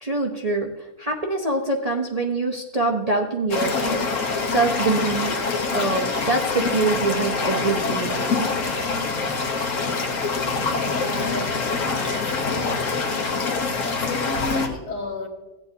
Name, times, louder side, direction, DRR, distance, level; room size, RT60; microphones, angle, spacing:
voice 1, 0.0-5.3 5.7-8.6, right 3 dB, 40° right, 0 dB, 0.6 m, -25 dB
sound 1, 3.5-14.7, left 4 dB, 55° left, 1.4 m, -25 dB
voice 2, 10.5-12.9 13.4-15.3, left 3 dB, 75° left, -1 dB, 2.2 m, -32 dB
16.0 x 8.2 x 2.8 m, 1.1 s
omnidirectional pair, 1.7 m